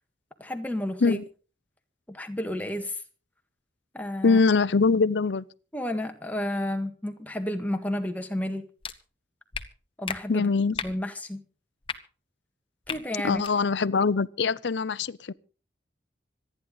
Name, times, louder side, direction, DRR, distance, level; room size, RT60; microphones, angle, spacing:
voice 1, 0.4-1.2 2.1-3.0 3.9-4.4 5.7-8.7 10.0-10.5 10.8-11.4 12.9-13.4, left 1 dB, 10° left, 1.7 m, -31 dB
voice 2, 4.2-5.4 10.3-10.8 12.9-13.0 13.2-15.3, left 4 dB, 85° left, 0.6 m, -23 dB
sound 1, 8.8-8.9 9.5-9.6 10.1-10.2 10.7-10.9 11.8-12.0 12.8-13.0 13.4-13.5, left 6 dB, 30° left, 1.1 m, -33 dB
26.0 x 10.0 x 4.0 m
head